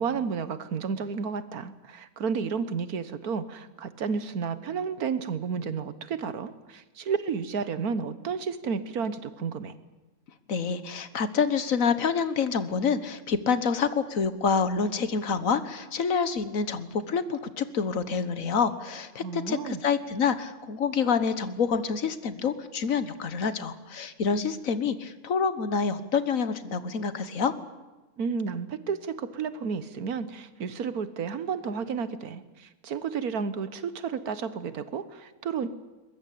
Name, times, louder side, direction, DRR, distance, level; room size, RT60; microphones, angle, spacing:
voice 1, 0.0-9.7 19.2-19.8 28.2-35.7, right 6 dB, 80° right, 13 dB, 1.7 m, -32 dB
voice 2, 10.5-27.5, left 5 dB, 65° left, 12 dB, 1.6 m, -27 dB
22.0 x 21.5 x 8.5 m, 1.1 s
omnidirectional pair, 1.5 m